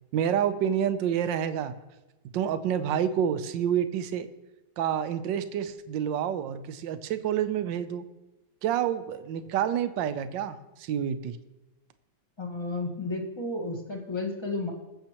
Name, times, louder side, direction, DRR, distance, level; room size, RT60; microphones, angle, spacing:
voice 1, 0.1-1.7 2.3-4.3 4.8-8.0 8.6-11.4, right 9 dB, 85° right, 11 dB, 1.3 m, -28 dB
voice 2, 12.4-14.7, left 2 dB, 15° left, 1 dB, 1.4 m, -32 dB
21.0 x 7.6 x 3.0 m, 1.0 s
omnidirectional pair, 1.9 m